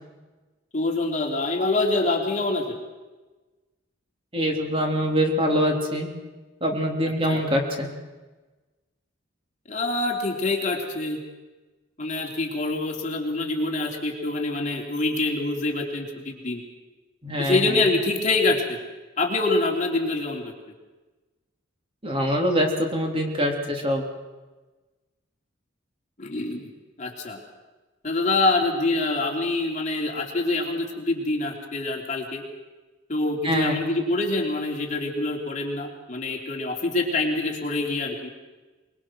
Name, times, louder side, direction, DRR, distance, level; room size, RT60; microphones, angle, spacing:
voice 1, 0.7-2.8 7.3-7.4 9.7-11.2 12.0-16.6 17.4-18.8 19.2-20.5 26.2-26.7 27.0-27.4 28.0-32.4 33.1-38.3, left 2 dB, 40° left, 0 dB, 3.4 m, -25 dB
voice 2, 4.3-6.1 6.6-7.9 17.2-17.9 22.0-24.0 33.4-33.8, equal, 30° right, 1 dB, 3.5 m, -24 dB
24.0 x 22.5 x 6.2 m, 1.2 s
head